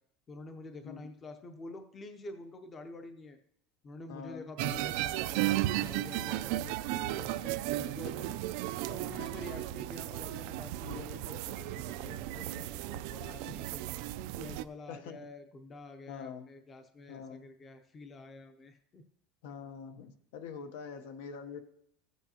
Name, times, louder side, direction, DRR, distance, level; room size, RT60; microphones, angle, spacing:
voice 1, 0.3-3.4 3.8-8.3 8.9-13.8 14.4-19.0, left 2 dB, 20° left, 7 dB, 0.6 m, -48 dB
voice 2, 4.1-4.5 9.2-9.3 10.8-11.2 13.5-13.6 14.9-15.2 16.1-16.5 17.1-17.5 19.4-21.6, left 6 dB, 70° left, 7 dB, 0.9 m, -45 dB
sound 1, 4.6-14.6, right 15 dB, 60° right, 0.4 m, -35 dB
14.5 x 8.2 x 2.9 m, 0.70 s
cardioid pair, 170°, 0 cm